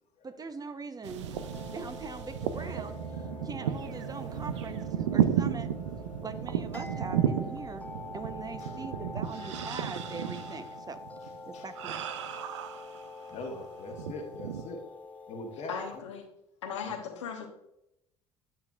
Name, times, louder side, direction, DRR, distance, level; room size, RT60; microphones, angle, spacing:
voice 1, 0.2-3.0 3.4-5.7 6.2-7.8 8.1-11.0 11.5-12.0, right 4 dB, 25° right, 10 dB, 0.8 m, -42 dB
sound 1, 1.0-13.5 13.9-14.7, right 9 dB, 80° right, 0.5 m, -33 dB
sound 2, 1.3-16.0, left 3 dB, 10° left, 0.7 m, -46 dB
sound 3, 2.1-9.8, right 4 dB, 45° right, 1.5 m, -49 dB
voice 2, 3.1-3.4 9.4-9.5 11.5-11.6 13.3-14.8 15.3-16.0 16.8-17.0, left 2 dB, 50° left, 1 dB, 1.3 m, -42 dB
voice 3, 15.7-16.2 16.6-17.5, left 6 dB, 80° left, 2 dB, 1.0 m, -37 dB
9.3 x 7.1 x 2.4 m, 0.80 s
hypercardioid pair, 60°, 15 cm